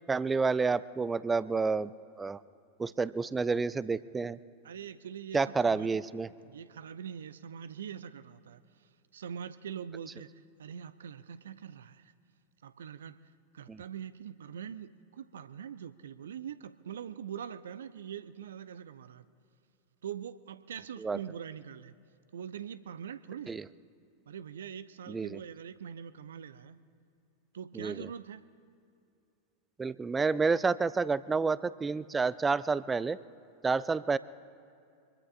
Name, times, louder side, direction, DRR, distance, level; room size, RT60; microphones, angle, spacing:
voice 1, 0.1-2.4 2.8-4.4 5.3-6.3 13.7-13.8 21.0-21.2 23.5-23.6 25.1-25.4 27.7-28.1 29.8-33.2 33.6-34.2, right 4 dB, 15° right, 18 dB, 0.4 m, -29 dB
voice 2, 4.6-6.0 6.4-12.1 12.6-13.2 13.5-19.3 20.0-22.0 22.3-23.6 24.3-26.8 27.5-28.4, right 8 dB, 65° right, 14 dB, 0.6 m, -43 dB
25.5 x 21.5 x 2.5 m, 2.5 s
figure-of-eight pair, 90°, 0 cm